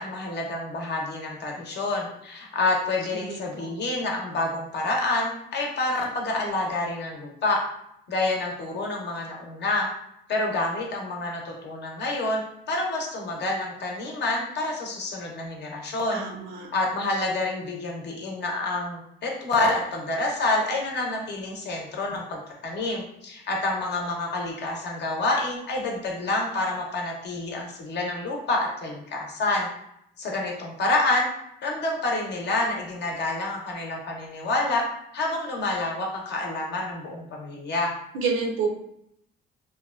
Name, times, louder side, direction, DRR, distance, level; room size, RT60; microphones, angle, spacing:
voice 1, 0.0-7.6 8.1-9.9 10.3-12.4 12.7-16.2 16.7-29.7 30.2-31.3 31.6-34.8 35.1-37.9, left 2 dB, 60° left, 0 dB, 0.7 m, -28 dB
voice 2, 3.1-3.7 16.1-16.7 38.1-38.7, right 4 dB, 85° right, 2 dB, 0.6 m, -29 dB
2.8 x 2.2 x 2.3 m, 0.75 s
cardioid pair, 90°, 20 cm